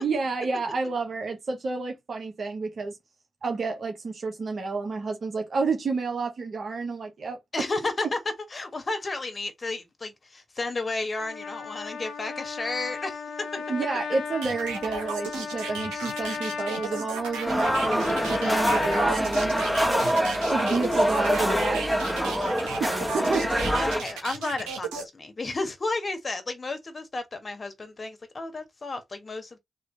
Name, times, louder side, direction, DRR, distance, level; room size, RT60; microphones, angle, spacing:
voice 1, 0.0-3.0 3.4-7.6 13.7-19.7 20.4-23.5, right 4 dB, 55° right, 1.2 m, -30 dB
voice 2, 7.5-8.2 8.5-13.6 23.2-23.4 23.8-29.6, left 3 dB, 40° left, 1.5 m, -32 dB
Trumpet, 11.2-19.2, left 5 dB, 75° left, 0.9 m, -36 dB
sound 1, 14.4-25.0, right 5 dB, 90° right, 1.3 m, -35 dB
sound 2, 17.5-24.0, equal, ahead, 1.7 m, -25 dB
3.7 x 3.2 x 4.0 m
supercardioid pair, 45°, 0 cm